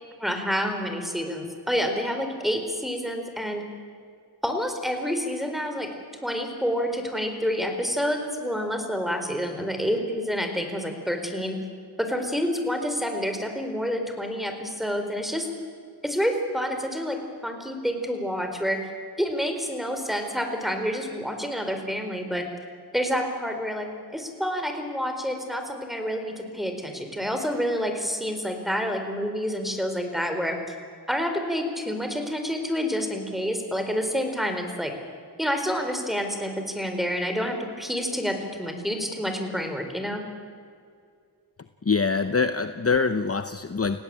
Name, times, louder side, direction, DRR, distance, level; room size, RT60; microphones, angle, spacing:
voice 1, 0.2-3.7 4.4-5.9 6.2-11.6 12.0-15.5 16.0-18.8 19.2-22.4 22.9-30.7 31.1-34.9 35.4-40.2, equal, ahead, 5 dB, 4.4 m, -28 dB
voice 2, 41.8-44.0, left 4 dB, 35° left, 10 dB, 0.9 m, -24 dB
29.0 x 17.5 x 8.9 m, 2.2 s
wide cardioid pair, 75°, 40 cm